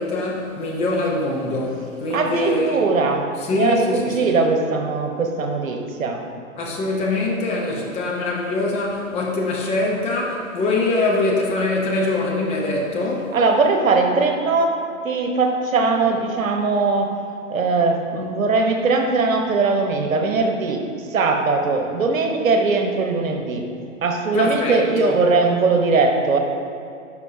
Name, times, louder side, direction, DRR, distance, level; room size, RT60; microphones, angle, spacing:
voice 1, 0.0-2.8 3.4-4.4 6.6-13.3 24.3-25.2, left 2 dB, 15° left, -2 dB, 0.7 m, -23 dB
voice 2, 2.1-6.2 13.3-14.7 15.0-17.1 17.5-20.8 21.1-26.4, right 3 dB, 75° right, 3 dB, 1.1 m, -20 dB
11.0 x 5.5 x 2.7 m, 2.5 s
hypercardioid pair, 125°, 40 cm